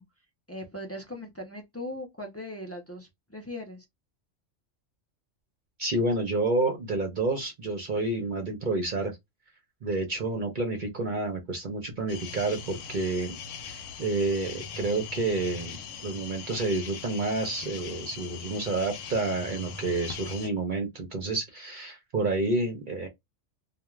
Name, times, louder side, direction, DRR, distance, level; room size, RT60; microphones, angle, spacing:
voice 1, 0.5-3.8, left 1 dB, 25° left, 0.3 m, -39 dB
voice 2, 5.8-9.1 9.8-13.4 13.6-23.1, right 2 dB, 50° right, 0.7 m, -29 dB
sound 1, 12.1-20.5, left 6 dB, 85° left, 1.0 m, -41 dB
2.3 x 2.2 x 3.0 m
omnidirectional pair, 1.3 m